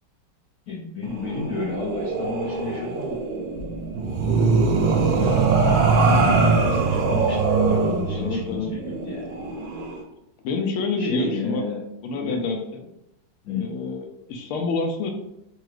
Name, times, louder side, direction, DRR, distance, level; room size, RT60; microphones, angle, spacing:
voice 1, 0.7-3.2 4.4-4.8 5.1-9.3 11.0-11.8 12.1-12.4 13.4-13.7, left 3 dB, 70° left, -4 dB, 0.8 m, -32 dB
sound 1, 1.0-10.0, right 4 dB, 75° right, 1.3 m, -22 dB
voice 2, 8.1-8.7 10.4-11.6 12.0-12.6 13.5-15.1, left 3 dB, 90° left, 4 dB, 1.5 m, -27 dB
4.8 x 2.3 x 3.1 m, 0.85 s
omnidirectional pair, 2.3 m